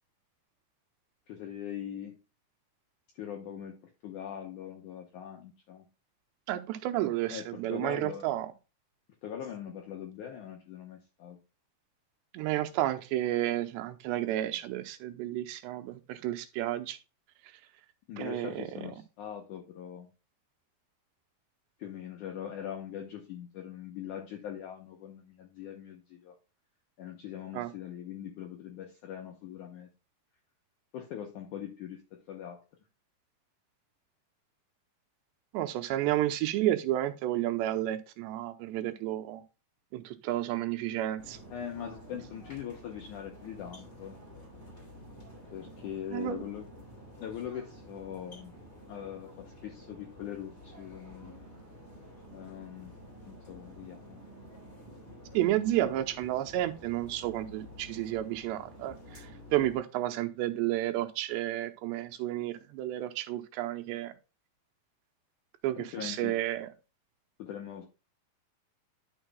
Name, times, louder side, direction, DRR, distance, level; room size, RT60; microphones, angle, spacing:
voice 1, 1.3-2.1 3.1-3.8 4.0-5.8 7.3-8.2 9.2-11.4 18.1-20.1 21.8-26.4 27.0-29.9 30.9-32.0 32.3-32.6 41.5-44.1 45.5-46.7 47.2-48.5 48.9-51.3 52.3-52.9 53.3-54.2 65.8-66.3 67.4-67.9, left 9 dB, 75° left, 1.8 m, -41 dB
voice 2, 6.5-8.5 12.3-17.0 18.2-18.6 27.5-27.7 35.5-39.4 39.9-41.4 46.1-46.4 55.3-64.1 65.6-66.7, right 14 dB, 85° right, 2.9 m, -31 dB
sound 1, 41.2-59.8, equal, 20° left, 2.8 m, -50 dB
11.0 x 6.4 x 2.2 m
omnidirectional pair, 4.9 m